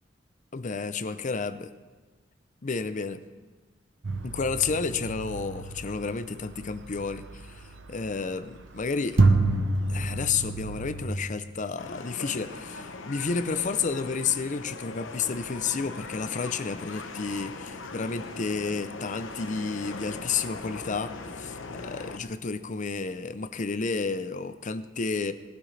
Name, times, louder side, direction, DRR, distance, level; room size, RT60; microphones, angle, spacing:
voice 1, 0.5-1.7 2.6-3.2 4.2-7.6 7.9-9.2 9.9-25.3, left 5 dB, 40° left, 12 dB, 0.6 m, -31 dB
sound 1, 4.0-8.0 8.6-8.7 9.2-11.1, right 2 dB, 80° right, 1.0 m, -28 dB
sound 2, 11.8-22.2, left 3 dB, 90° left, 0.9 m, -40 dB
18.5 x 12.5 x 3.3 m, 1.3 s
head